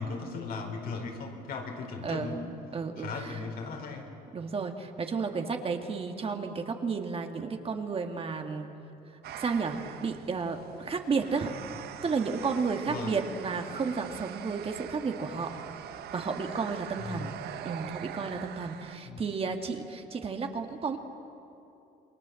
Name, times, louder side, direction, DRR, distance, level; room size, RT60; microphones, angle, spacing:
voice 1, 0.0-2.4 3.0-4.1 12.9-13.2 17.0-17.3 19.1-19.2, left 4 dB, 65° left, 2 dB, 4.6 m, -37 dB
voice 2, 2.0-2.4 2.7-3.4 4.3-8.7 9.3-11.6 12.0-15.5 16.1-17.3 17.6-21.0, right 5 dB, 35° right, 4 dB, 2.1 m, -32 dB
sound 1, 9.2-19.0, right 10 dB, 70° right, 1.2 m, -43 dB
28.5 x 22.0 x 7.8 m, 2.8 s
cardioid pair, 110°, 17 cm